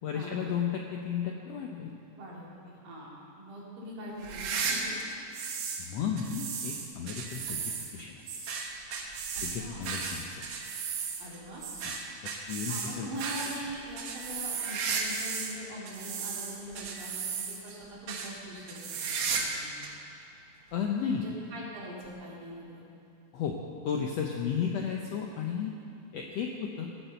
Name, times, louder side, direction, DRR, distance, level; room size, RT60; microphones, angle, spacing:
voice 1, 0.0-1.9 5.8-8.2 9.4-10.4 11.8-11.9 12.2-13.1 13.5-13.6 20.7-21.2 23.3-23.6 23.8-25.7 26.1-26.9, left 7 dB, 80° left, 1 dB, 1.5 m, -33 dB
voice 2, 2.2-5.0 9.3-9.8 11.2-11.6 12.7-19.9 21.1-22.8, equal, 80° right, -5 dB, 4.5 m, -43 dB
sound 1, 4.2-5.9 6.2-15.6 15.9-17.7 18.1-18.3 18.7-19.6 19.8-19.9 20.7-20.8 22.0-22.1, right 5 dB, 60° right, 2.3 m, -35 dB
17.0 x 8.8 x 6.8 m, 2.6 s
omnidirectional pair, 4.0 m